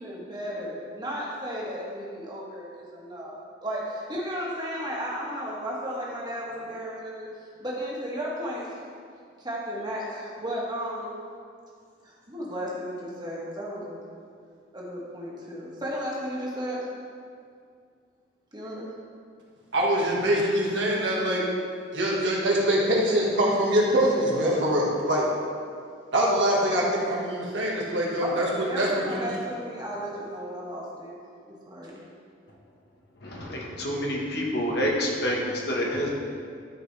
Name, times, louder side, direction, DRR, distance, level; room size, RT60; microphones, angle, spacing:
voice 1, 0.0-3.3 3.6-7.3 7.6-8.8 9.4-11.1 12.0-14.0 14.7-16.8 18.5-18.9 28.2-31.1 31.5-32.0, equal, 25° right, -5 dB, 1.6 m, -34 dB
voice 2, 19.7-21.4 21.9-25.2 26.1-29.3, right 1 dB, 80° right, -4 dB, 1.7 m, -24 dB
voice 3, 33.2-36.1, equal, 60° left, -2 dB, 1.4 m, -28 dB
12.5 x 5.1 x 3.4 m, 2.2 s
head